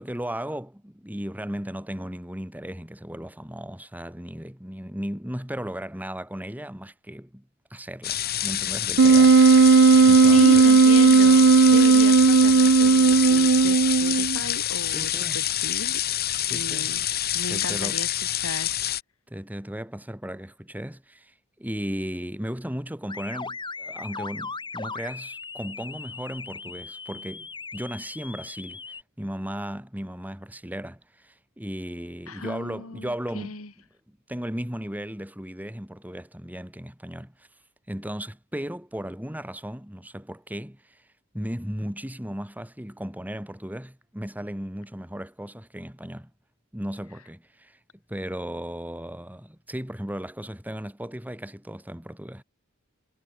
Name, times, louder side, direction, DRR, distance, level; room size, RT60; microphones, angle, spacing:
voice 1, 0.0-7.4 7.7-10.6 14.9-15.4 16.4-16.9 17.5-18.0 19.3-28.8 29.2-33.6 34.3-37.5 37.9-41.0 41.3-46.3 46.7-47.8 48.1-52.4, equal, 10° right, 2.8 m, -36 dB
sound 1, 8.0-19.0, left 12 dB, 45° left, 2.6 m, -27 dB
Wind instrument woodwind instrument, 9.0-14.4, right 4 dB, 55° right, 0.5 m, -15 dB
voice 2, 10.3-16.0 16.5-17.1 17.3-18.1 18.4-18.7 32.3-33.7, left 2 dB, 70° left, 3.7 m, -35 dB
sound 2, 23.1-29.0, left 4 dB, 20° left, 7.0 m, -38 dB
head